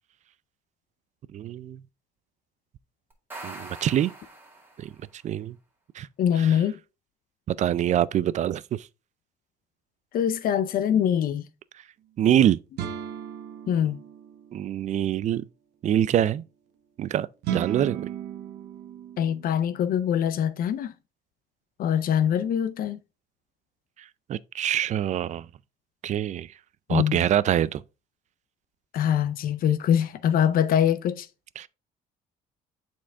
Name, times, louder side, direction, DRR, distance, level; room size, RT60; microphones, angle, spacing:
voice 1, 1.3-1.8 3.4-4.1 4.8-4.9 5.2-5.6 6.0-6.1 7.5-8.9 12.2-12.6 14.5-15.4 15.8-16.4 17.0-17.3 17.5-18.0 24.3-25.5 26.0-26.5 26.9-27.8 31.6-31.7, right 11 dB, 45° right, 0.4 m, -24 dB
sound 1, 3.1-5.1, right 2 dB, 10° right, 2.1 m, -43 dB
voice 2, 6.2-6.8 10.1-11.5 13.7-14.0 19.2-20.9 21.8-23.0 26.9-27.2 28.9-31.3, left 9 dB, 60° left, 0.6 m, -23 dB
sound 2, 12.8-14.8 17.4-19.6, right 9 dB, 75° right, 0.9 m, -35 dB
7.4 x 4.4 x 3.4 m
cardioid pair, 110°, 17 cm